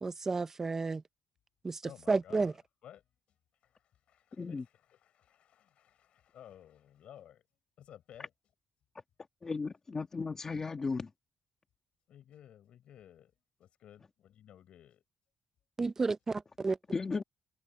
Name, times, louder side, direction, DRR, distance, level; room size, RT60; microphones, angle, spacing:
voice 1, 0.0-1.0 1.6-1.8 2.1-2.5 15.8-16.8, right 4 dB, 20° right, 0.5 m, -31 dB
voice 2, 1.8-2.5 2.8-3.0 3.6-7.4 7.8-8.3 12.1-13.3 13.6-15.0, left 10 dB, 65° left, 4.6 m, -55 dB
voice 3, 9.4-11.1 16.9-17.2, left 4 dB, 25° left, 1.5 m, -35 dB
cardioid pair, 170°, 2 cm